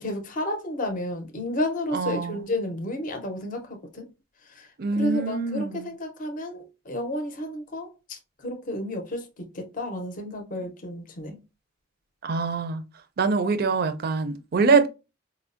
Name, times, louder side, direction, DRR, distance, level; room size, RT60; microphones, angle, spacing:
voice 1, 0.0-4.1 4.5-4.7 5.0-11.4, left 1 dB, 40° left, 0.6 m, -32 dB
voice 2, 1.9-2.5 4.8-5.9 10.6-10.7 12.2-12.8 13.2-14.9, right 4 dB, 50° right, 0.4 m, -24 dB
4.3 x 2.0 x 2.4 m
head